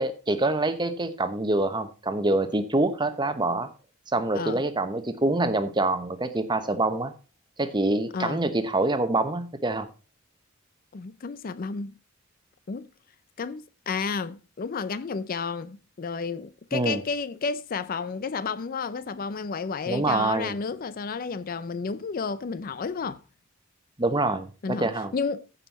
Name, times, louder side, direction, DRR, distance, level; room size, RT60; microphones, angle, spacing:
voice 1, 0.0-3.7 4.1-7.1 7.6-9.9 16.7-17.0 19.9-20.6 24.0-25.1, right 2 dB, 20° right, 0.9 m, -26 dB
voice 2, 10.9-11.9 12.7-12.9 13.4-23.2 24.6-25.4, left 5 dB, 40° left, 0.4 m, -31 dB
15.0 x 5.5 x 4.1 m
head